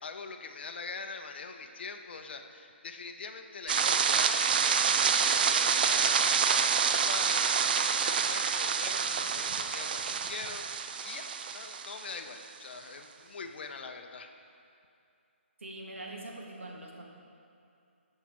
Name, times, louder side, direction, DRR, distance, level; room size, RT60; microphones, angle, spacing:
voice 1, 0.0-14.3, left 4 dB, 55° left, 6 dB, 0.6 m, -43 dB
sound 1, 3.7-12.2, right 6 dB, 45° right, 0.4 m, -27 dB
voice 2, 15.6-17.0, right 2 dB, 80° right, -1 dB, 1.3 m, -43 dB
14.0 x 5.5 x 3.0 m, 2.5 s
figure-of-eight pair, 145°, 7 cm